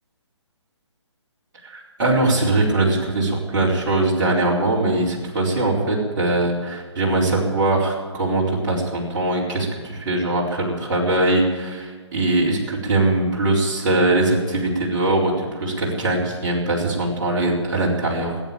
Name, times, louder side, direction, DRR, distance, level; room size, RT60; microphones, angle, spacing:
voice 1, 1.6-18.4, right 2 dB, 45° right, -4 dB, 4.4 m, -21 dB
18.0 x 9.1 x 8.8 m, 1.5 s
figure-of-eight pair, 135°, 15 cm